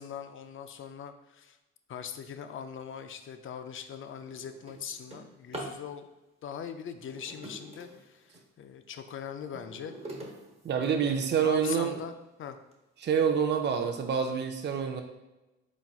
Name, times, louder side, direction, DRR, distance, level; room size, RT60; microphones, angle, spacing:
voice 1, 0.0-1.6 1.9-6.1 6.4-10.0 11.1-12.6, left 8 dB, 45° left, 8 dB, 0.4 m, -41 dB
Drawer open or close, 3.2-3.4 3.9-5.8 6.9-8.5 9.0-11.5 12.1-12.2 12.7-12.8 13.2-13.6, right 1 dB, 20° right, 1.1 m, -45 dB
voice 2, 10.6-12.0 13.0-15.0, right 7 dB, 35° right, 5 dB, 0.5 m, -27 dB
4.4 x 4.1 x 2.4 m, 1.0 s
cardioid pair, 90°, 30 cm